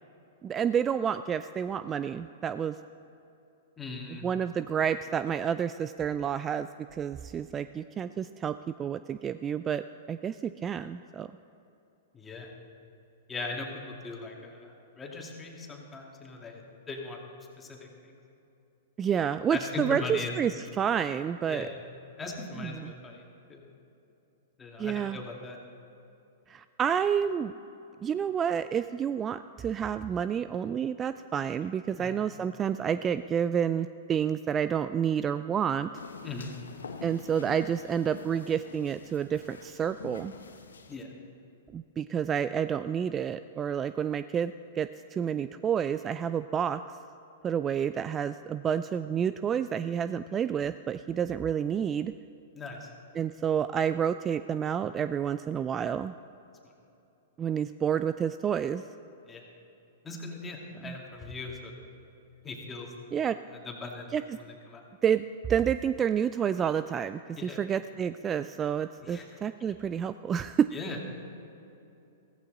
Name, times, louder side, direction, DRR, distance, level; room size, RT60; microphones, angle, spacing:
voice 1, 0.4-2.8 4.2-11.3 19.0-21.7 22.6-22.9 24.8-25.2 26.5-27.5 28.0-35.9 37.0-40.3 41.7-46.8 47.4-52.1 53.1-56.1 57.4-58.8 60.8-61.0 63.1-63.4 64.1-64.4 65.0-70.7, right 8 dB, 25° right, 13 dB, 0.3 m, -29 dB
voice 2, 3.8-4.2 12.1-12.5 13.3-17.2 17.6-18.2 19.5-20.3 21.5-21.8 22.2-23.6 24.6-25.6 32.0-32.1 36.2-36.6 40.9-41.1 52.5-52.9 59.2-59.4 60.0-61.7 62.4-62.9 63.6-64.1 64.7-64.8 67.4-67.6 69.0-69.2 70.7-71.1, left 3 dB, 15° left, 0 dB, 2.2 m, -39 dB
sound 1, 35.9-41.0, left 5 dB, 80° left, 0.9 m, -46 dB
15.0 x 14.5 x 3.9 m, 2.8 s
hypercardioid pair, 110°, 0 cm